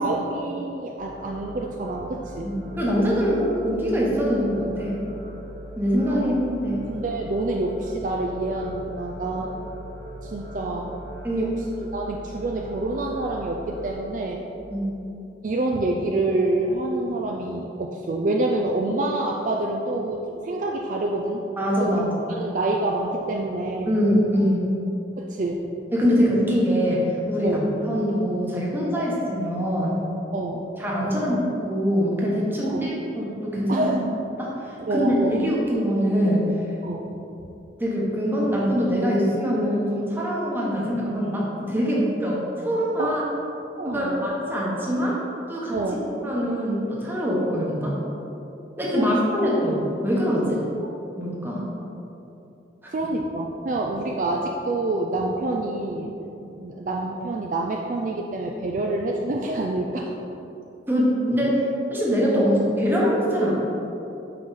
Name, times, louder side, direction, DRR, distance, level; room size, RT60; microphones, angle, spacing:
voice 1, 0.0-2.5 6.1-6.3 6.9-9.5 10.2-10.9 11.3-11.5 11.9-14.5 15.4-21.4 21.8-24.0 25.2-25.7 27.4-27.6 30.3-30.7 32.7-32.9 33.7-34.0 34.9-35.4 36.8-37.2 43.0-43.2 43.8-44.3 45.7-46.0 48.9-49.1 52.9-60.1 62.3-62.5, right 2 dB, 45° right, 0 dB, 0.3 m, -27 dB
Cinematic Ambiance Futuristic Background, 1.0-13.9, right 1 dB, 90° right, 1.3 m, -40 dB
voice 2, 2.4-5.0 5.8-6.8 11.2-11.4 14.7-14.8 21.6-22.4 23.9-24.8 25.9-30.0 30.8-33.8 34.4-36.5 37.8-43.2 43.8-45.2 45.5-45.8 46.2-47.9 48.8-50.6 51.2-51.7 60.9-61.6 61.9-63.5, equal, 10° right, -5 dB, 1.1 m, -23 dB
5.9 x 4.8 x 4.0 m, 2.9 s
head